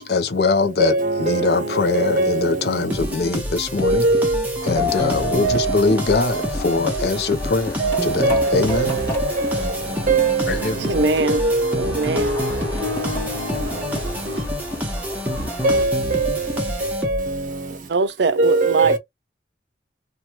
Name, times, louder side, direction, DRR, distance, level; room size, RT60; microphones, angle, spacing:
voice 1, 0.0-0.9 1.2-4.0 4.7-8.9 10.5-10.8, left 3 dB, 60° left, 0.5 m, -22 dB
voice 2, 0.8-2.6 3.8-4.4 4.8-5.8 7.8-8.9 9.4-9.7 10.1-10.5 11.3-11.8 12.2-12.5 12.8-13.4 15.6-16.3 17.0-17.3 18.4-19.0, right 2 dB, 45° right, 0.7 m, -21 dB
sound 1, 2.9-17.5, equal, 10° right, 0.9 m, -28 dB
sound 2, 4.6-15.8, equal, 15° left, 1.4 m, -35 dB
voice 3, 10.8-11.4 11.8-12.4 17.9-19.0, right 3 dB, 75° right, 0.5 m, -21 dB
2.9 x 2.3 x 2.9 m
head